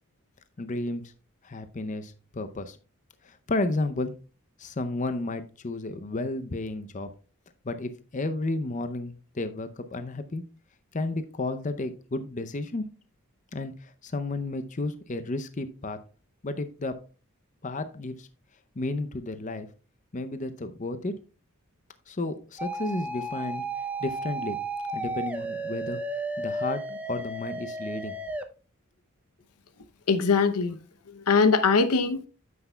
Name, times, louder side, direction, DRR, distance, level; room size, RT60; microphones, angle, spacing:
voice 1, 0.6-1.1 1.4-2.8 3.2-4.1 4.6-7.1 7.6-10.4 10.9-12.9 13.5-16.0 16.4-17.0 17.6-18.3 18.8-19.7 20.1-21.2 22.1-23.6 24.0-24.6 24.9-26.0 26.4-28.2, left 2 dB, 35° left, 0.6 m, -32 dB
sound 1, 22.6-28.4, right 2 dB, 5° right, 0.6 m, -33 dB
voice 2, 30.1-30.7 31.1-32.3, left 4 dB, 90° left, 0.8 m, -22 dB
9.3 x 8.1 x 2.3 m
head